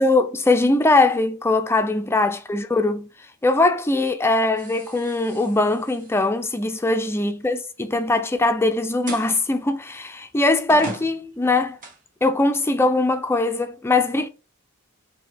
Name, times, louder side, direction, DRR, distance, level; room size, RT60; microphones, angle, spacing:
voice 1, 0.0-3.1 3.4-11.8 12.2-14.3, left 2 dB, 10° left, 0.4 m, -21 dB
sound 1, 4.6-7.6 9.1-9.4 10.1-10.2 10.7-12.0, right 2 dB, 40° right, 1.3 m, -38 dB
4.4 x 2.9 x 3.3 m
head